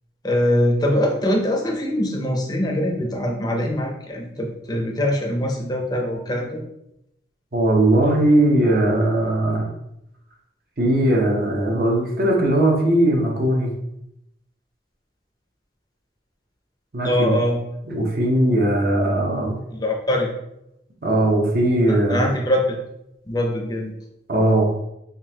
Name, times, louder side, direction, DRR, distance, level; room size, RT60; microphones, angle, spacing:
voice 1, 0.2-6.6 17.0-17.6 19.7-20.3 21.9-22.8 23.3-23.9, left 1 dB, 20° left, 1 dB, 0.5 m, -23 dB
voice 2, 7.5-9.7 10.8-13.7 16.9-17.3 17.9-19.6 21.0-22.3 24.3-24.7, right 1 dB, 50° right, -1 dB, 0.8 m, -19 dB
3.8 x 2.7 x 2.8 m, 0.82 s
head